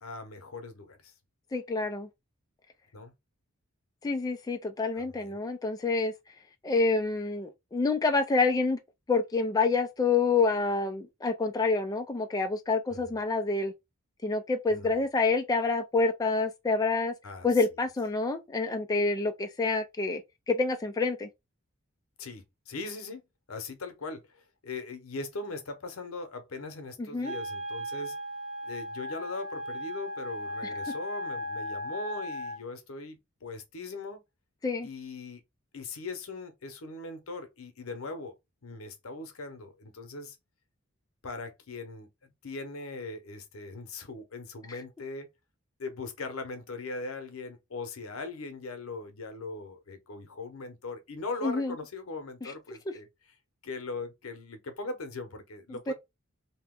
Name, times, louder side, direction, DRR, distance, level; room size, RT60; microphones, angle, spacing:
voice 1, 0.0-1.1 2.9-3.1 4.9-5.4 12.9-13.1 14.7-15.0 17.2-17.5 22.2-23.2 23.5-28.2 28.7-34.2 34.8-35.4 35.7-38.3 38.6-40.4 41.2-42.1 42.4-45.3 45.8-53.3 53.6-55.9, left 3 dB, 85° left, 0.8 m, -40 dB
voice 2, 1.5-2.1 4.0-6.1 6.6-8.8 9.1-13.7 14.2-17.1 17.4-20.2 20.5-21.3 27.0-27.3 34.6-34.9 51.4-51.7 52.4-52.5 52.9-53.0 55.9-56.0, left 3 dB, 20° left, 0.3 m, -27 dB
Wind instrument woodwind instrument, 27.2-32.6, equal, 80° right, 1.1 m, -36 dB
2.8 x 2.2 x 3.6 m
head